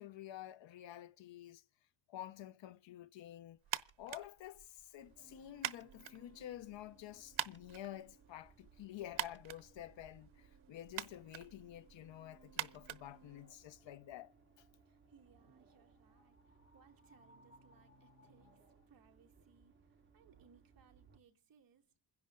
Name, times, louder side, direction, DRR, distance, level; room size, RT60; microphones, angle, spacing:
voice 1, 0.0-1.6 2.1-3.6 4.0-14.6, left 12 dB, 75° left, 0.8 m, -50 dB
sound 1, 3.6-13.9, right 14 dB, 85° right, 1.0 m, -47 dB
sound 2, 5.0-21.2, right 5 dB, 25° right, 2.4 m, -66 dB
sound 3, 13.2-19.0, left 2 dB, 35° left, 2.5 m, -70 dB
voice 2, 14.9-21.9, right 6 dB, 50° right, 2.0 m, -68 dB
28.0 x 11.0 x 3.8 m
wide cardioid pair, 175°, 45 cm